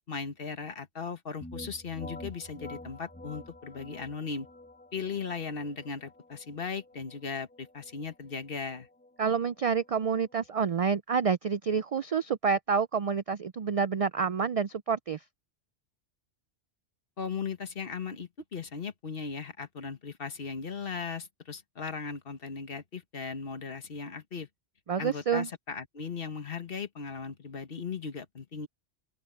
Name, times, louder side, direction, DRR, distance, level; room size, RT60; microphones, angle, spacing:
voice 1, 0.1-4.5 4.9-8.9 17.2-24.5 25.0-28.7, left 5 dB, 55° left, 1.5 m, -37 dB
sound 1, 1.4-11.0, left 1 dB, 10° left, 2.2 m, -49 dB
voice 2, 9.2-15.2 24.9-25.5, right 6 dB, 65° right, 0.3 m, -28 dB
open air
omnidirectional pair, 1.1 m